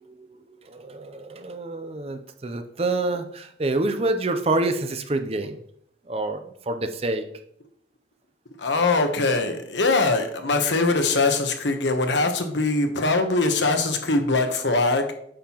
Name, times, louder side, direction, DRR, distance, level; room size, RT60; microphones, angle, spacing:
voice 1, 0.0-5.6 6.1-6.4 6.7-7.2, right 2 dB, 35° right, 8 dB, 0.5 m, -27 dB
voice 2, 8.6-15.1, left 3 dB, 75° left, 6 dB, 1.0 m, -22 dB
8.6 x 5.6 x 2.9 m, 0.71 s
head